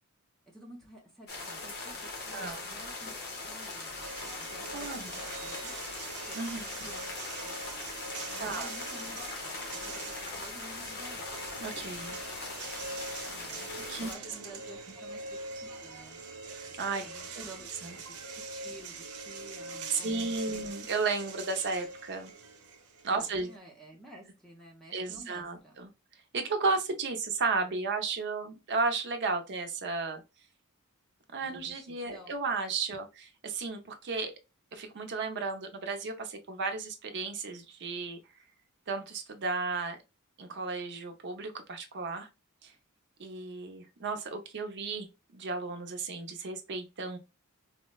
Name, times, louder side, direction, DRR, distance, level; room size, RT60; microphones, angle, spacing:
voice 1, 0.5-3.2 3.4-4.1 4.4-4.9 5.2-5.8 6.3-7.1 7.4-7.8 8.3-11.6 13.3-13.6 14.0-16.2 17.0-17.7 18.1-20.7 23.2-25.8 31.4-32.4, right 1 dB, ahead, -1 dB, 0.6 m, -52 dB
sound 1, 1.3-14.1, left 3 dB, 50° left, 0.7 m, -40 dB
voice 2, 2.3-2.6 4.7-5.1 6.3-6.6 8.4-8.7 11.6-12.2 13.9-14.1 16.8-17.0 17.4-17.5 17.8-17.9 19.9-22.3 23.0-23.5 24.9-25.9 26.3-30.2 31.3-34.3 34.7-38.2 38.9-40.0 40.4-42.3 42.6-42.7 43.2-45.1 45.3-47.2, right 4 dB, 55° right, 7 dB, 0.6 m, -34 dB
sound 2, 4.0-23.6, right 3 dB, 85° right, 0.7 m, -43 dB
4.2 x 2.0 x 2.2 m, 0.26 s
head